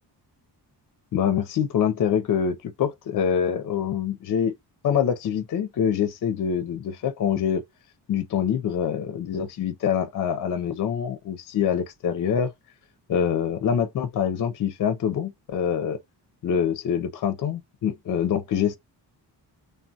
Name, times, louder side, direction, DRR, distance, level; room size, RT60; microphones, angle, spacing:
voice 1, 1.1-4.5 4.8-7.7 8.1-12.5 13.1-16.0 16.4-18.8, left 8 dB, 50° left, 0.5 m, -25 dB
3.3 x 2.1 x 2.6 m
cardioid pair, 105°, 41 cm